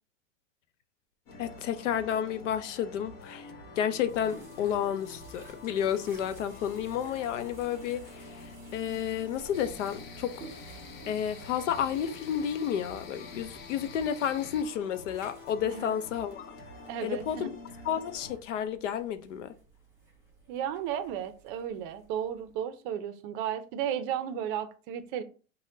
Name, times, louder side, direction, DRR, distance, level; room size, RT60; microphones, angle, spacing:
sound 1, 1.3-18.4, left 2 dB, 50° left, 1.4 m, -48 dB
voice 1, 1.4-3.5 3.8-10.5 11.1-16.5 17.0-17.5 17.8-19.5, left 9 dB, 75° left, 0.7 m, -31 dB
sound 2, 4.1-22.5, right 2 dB, 5° right, 1.3 m, -55 dB
sound 3, 9.5-14.6, left 6 dB, 25° left, 0.5 m, -49 dB
voice 2, 15.6-15.9 16.9-17.5 20.5-25.2, right 9 dB, 40° right, 0.5 m, -34 dB
4.2 x 2.2 x 3.7 m
supercardioid pair, 135°, 38 cm